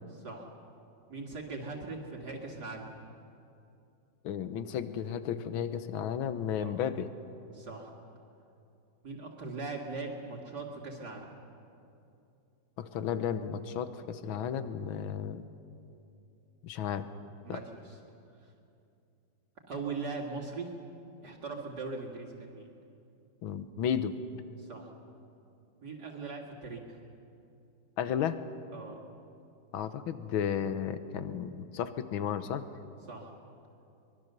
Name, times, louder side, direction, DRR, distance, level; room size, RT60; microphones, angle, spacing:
voice 1, 0.1-0.5 1.1-2.9 6.6-6.8 7.5-7.9 9.0-11.3 17.4-18.0 18.4-18.5 19.7-20.7 21.2-22.7 24.6-24.9 25.8-27.0 28.7-29.0 33.1-33.3, right 4 dB, 55° right, -1 dB, 2.4 m, -40 dB
voice 2, 4.2-7.1 12.8-15.5 16.6-17.1 17.5-17.6 23.4-24.2 28.0-28.4 29.7-32.6, left 8 dB, 80° left, 11 dB, 1.7 m, -33 dB
24.0 x 21.5 x 6.8 m, 2.7 s
omnidirectional pair, 2.2 m